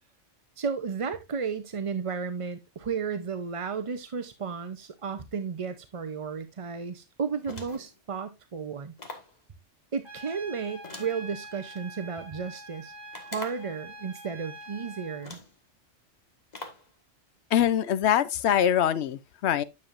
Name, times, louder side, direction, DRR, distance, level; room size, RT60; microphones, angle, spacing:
voice 1, 0.6-8.9 9.9-15.4, right 5 dB, 40° right, 0.5 m, -33 dB
sound 1, 7.4-8.0 9.0-9.4 10.8-11.8 13.1-13.8 14.6-14.7 15.2-15.6 16.5-16.9, left 2 dB, 35° left, 1.6 m, -43 dB
Trumpet, 10.0-15.3, right 2 dB, 20° left, 3.7 m, -45 dB
voice 2, 17.5-19.6, left 10 dB, 65° left, 0.9 m, -23 dB
9.6 x 7.1 x 2.5 m
omnidirectional pair, 1.3 m